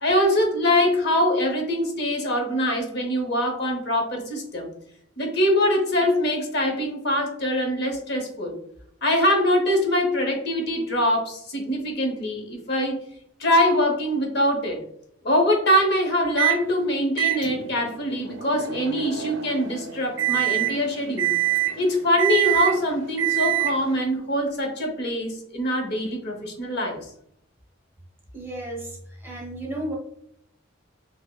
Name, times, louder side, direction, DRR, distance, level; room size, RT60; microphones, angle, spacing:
voice 1, 0.0-4.7 5.2-8.6 9.0-13.0 13.4-14.8 15.2-21.3 21.8-27.0, equal, 55° left, 2 dB, 0.8 m, -23 dB
Microwave oven, 16.4-16.6 17.2-24.0, right 15 dB, 65° right, 0.5 m, -26 dB
voice 2, 28.3-30.0, right 1 dB, 10° right, -1 dB, 0.7 m, -33 dB
4.8 x 2.0 x 2.2 m, 0.70 s
head